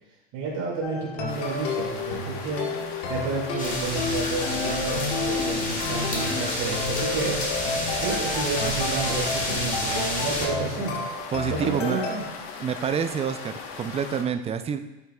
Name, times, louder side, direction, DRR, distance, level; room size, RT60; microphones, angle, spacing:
voice 1, 0.3-2.7 3.1-7.4 7.8-11.0 11.5-12.2, right 4 dB, 55° right, -4 dB, 2.4 m, -30 dB
sound 1, 0.8-12.2, left 3 dB, 80° left, 1.6 m, -31 dB
sound 2, 1.3-14.2, left 5 dB, 60° left, 1.2 m, -39 dB
sound 3, 3.6-10.5, left 2 dB, 25° left, 1.7 m, -30 dB
voice 2, 11.3-12.0 12.6-14.8, right 7 dB, 20° right, 9 dB, 0.4 m, -27 dB
9.3 x 5.7 x 2.3 m, 0.99 s
hypercardioid pair, 100°, 33 cm